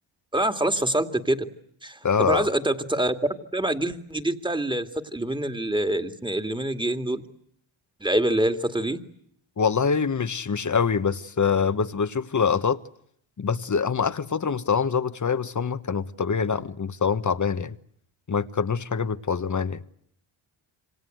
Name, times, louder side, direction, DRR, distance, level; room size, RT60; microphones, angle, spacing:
voice 1, 0.3-1.5 1.8-3.2 3.5-7.2 8.0-9.0, right 1 dB, 10° right, 2.4 m, -25 dB
voice 2, 2.0-2.5 9.6-12.8 13.4-17.8 18.3-19.8, left 6 dB, 35° left, 1.4 m, -25 dB
27.5 x 25.5 x 7.9 m
cardioid pair, 75°, 49 cm